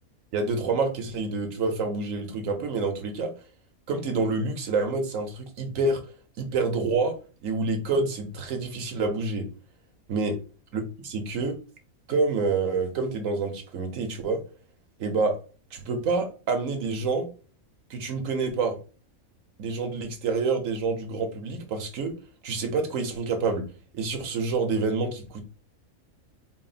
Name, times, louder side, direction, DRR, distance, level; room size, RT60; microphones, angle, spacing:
voice 1, 0.3-3.3 3.9-6.0 6.4-7.2 7.4-9.5 10.1-10.4 10.7-11.6 12.1-14.4 15.0-15.4 15.7-17.3 17.9-18.8 19.6-22.2 22.4-23.7 23.9-25.4, right 3 dB, 70° right, 5 dB, 1.3 m, -27 dB
4.2 x 2.1 x 4.0 m, 0.35 s
omnidirectional pair, 1.5 m